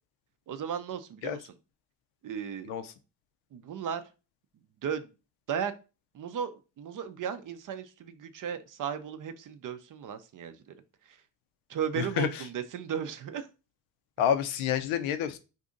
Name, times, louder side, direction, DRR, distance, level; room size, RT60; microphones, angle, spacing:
voice 1, 0.5-1.5 2.2-2.7 3.5-4.0 4.8-5.1 5.5-5.7 6.1-6.5 6.8-10.7 11.1-11.2 11.7-13.5, right 8 dB, 40° right, 11 dB, 0.5 m, -35 dB
voice 2, 12.0-12.3 14.2-15.4, left 9 dB, 75° left, 11 dB, 0.6 m, -28 dB
2.7 x 2.5 x 3.7 m, 0.31 s
hypercardioid pair, 60°, 49 cm